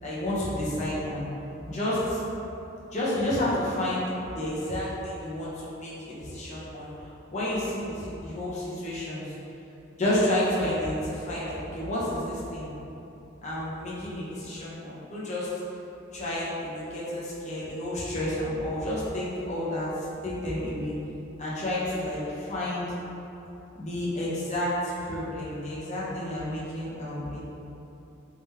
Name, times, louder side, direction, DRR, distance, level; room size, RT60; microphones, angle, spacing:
voice 1, 0.0-1.3 1.7-2.2 2.9-6.9 7.3-9.3 10.0-12.7 13.4-15.5 16.1-19.9 20.2-20.9 21.4-22.9 23.7-27.5, left 1 dB, 35° left, -8 dB, 0.8 m, -30 dB
3.6 x 2.9 x 3.3 m, 3.0 s
head